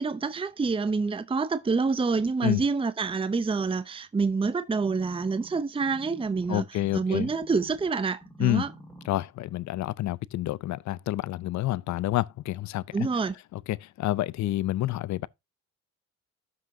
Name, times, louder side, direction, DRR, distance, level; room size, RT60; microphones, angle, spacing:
voice 1, 0.0-6.6 6.9-8.7 12.9-13.4, right 4 dB, 20° right, 0.7 m, -27 dB
sound 1, 4.7-7.9 8.2-9.2 9.8-9.9, right 1 dB, 5° left, 2.4 m, -48 dB
voice 2, 6.5-7.3 8.4-8.7 9.1-12.8 13.5-15.3, left 15 dB, 70° left, 0.6 m, -28 dB
13.0 x 5.9 x 2.7 m
cardioid pair, 90°, 30 cm